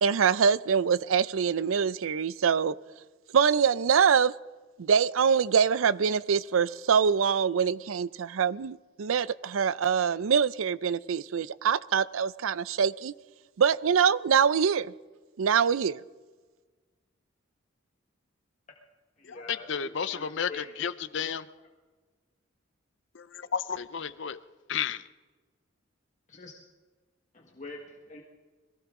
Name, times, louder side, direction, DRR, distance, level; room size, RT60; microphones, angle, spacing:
voice 1, 0.0-2.8 3.3-4.3 4.8-13.1 13.6-14.9 15.4-16.0, right 6 dB, 80° right, 0.5 m, -24 dB
voice 2, 19.2-20.7 26.3-26.5 27.3-28.2, left 2 dB, 35° left, 1.5 m, -45 dB
voice 3, 19.7-20.5 20.8-21.4 23.1-24.4 24.7-25.1, left 7 dB, 60° left, 0.6 m, -32 dB
22.0 x 16.5 x 3.7 m
head